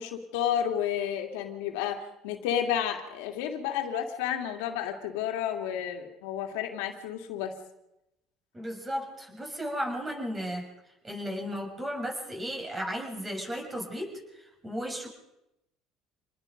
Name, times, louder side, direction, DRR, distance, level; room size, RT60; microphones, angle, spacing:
voice 1, 0.0-7.5, left 9 dB, 90° left, 3 dB, 2.6 m, -31 dB
voice 2, 8.5-10.7 11.0-15.1, equal, 20° right, 1 dB, 6.9 m, -35 dB
26.5 x 20.0 x 5.3 m, 0.88 s
supercardioid pair, 105°, 0 cm